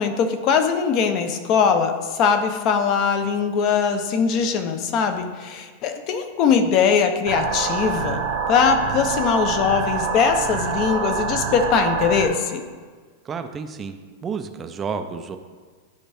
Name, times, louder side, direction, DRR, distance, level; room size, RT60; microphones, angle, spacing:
voice 1, 0.0-8.2 8.5-12.6, left 6 dB, 30° left, 8 dB, 0.6 m, -21 dB
sound 1, 7.3-12.3, right 5 dB, 45° right, 0.8 m, -26 dB
voice 2, 13.2-15.4, right 5 dB, 15° right, 7 dB, 0.4 m, -31 dB
11.5 x 4.5 x 3.4 m, 1.5 s
supercardioid pair, 170°, 0 cm